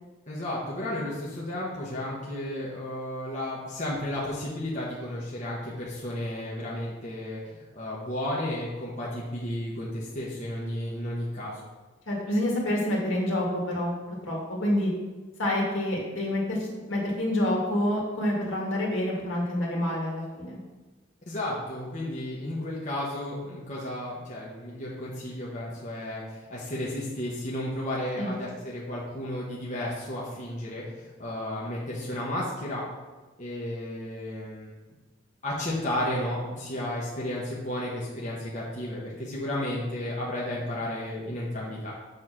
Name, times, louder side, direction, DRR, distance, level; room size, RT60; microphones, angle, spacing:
voice 1, 0.3-11.6 21.3-26.2 26.5-32.9 33.4-34.7 35.4-41.9, left 1 dB, 35° left, -6 dB, 1.3 m, -33 dB
voice 2, 12.1-14.9 15.4-20.6 28.2-28.4, left 1 dB, 70° left, -3 dB, 2.1 m, -28 dB
7.1 x 4.2 x 6.1 m, 1.2 s
head